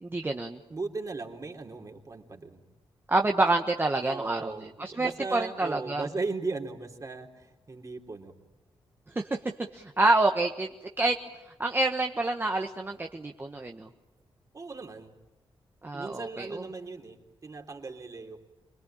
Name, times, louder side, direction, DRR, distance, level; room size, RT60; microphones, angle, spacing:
voice 1, 0.0-0.6 3.1-6.0 9.1-9.4 9.7-10.7 11.0-11.2 11.6-13.9 15.8-16.6, right 2 dB, 25° right, 4 dB, 1.3 m, -27 dB
voice 2, 0.7-2.6 4.0-8.3 14.5-15.2 15.9-18.4, right 3 dB, 40° right, 2 dB, 3.3 m, -37 dB
26.5 x 21.0 x 8.9 m, 1.0 s
cardioid pair, 95°, 9 cm